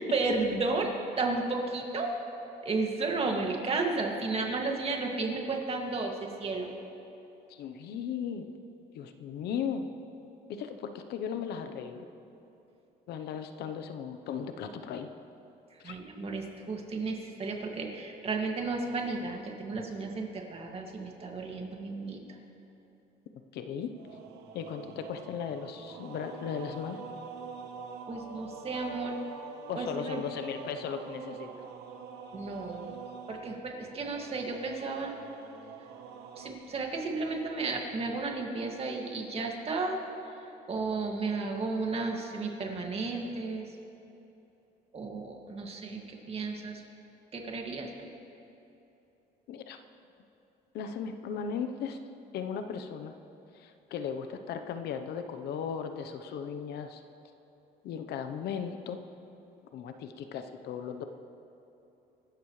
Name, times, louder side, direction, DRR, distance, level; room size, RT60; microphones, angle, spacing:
voice 1, 0.1-2.1 2.6-6.7 15.8-22.2 28.1-29.2 29.8-30.2 32.3-33.0 33.3-35.1 36.4-40.0 40.7-43.7 44.9-46.8 47.3-48.1, right 3 dB, 35° right, 1 dB, 2.3 m, -33 dB
voice 2, 7.5-8.5 8.9-9.9 10.5-12.1 13.1-15.1 15.8-15.9 23.5-24.0 24.5-27.0 29.7-31.5 49.5-49.8 50.7-52.0 52.3-53.1 53.5-57.0 57.8-59.0 59.7-61.0, left 7 dB, 75° left, 8 dB, 1.0 m, -37 dB
sound 1, 23.9-36.5, right 5 dB, 90° right, 1.3 m, -45 dB
25.0 x 13.0 x 3.3 m, 3.0 s
cardioid pair, 110°, 17 cm